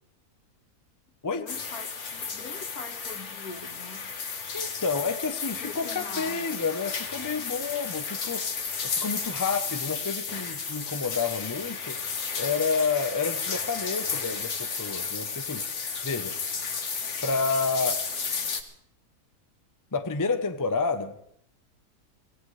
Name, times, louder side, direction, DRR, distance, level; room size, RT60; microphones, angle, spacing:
voice 1, 1.3-4.1 5.6-6.6, left 4 dB, 75° left, 6 dB, 2.0 m, -43 dB
sound 1, 1.5-18.6, left 5 dB, 50° left, 1.5 m, -33 dB
voice 2, 4.5-8.5 8.8-12.0 12.4-15.6 16.0-16.3 17.2-18.0 19.9-21.1, left 4 dB, 20° left, 8 dB, 0.6 m, -29 dB
25.0 x 16.0 x 3.3 m, 0.70 s
omnidirectional pair, 1.6 m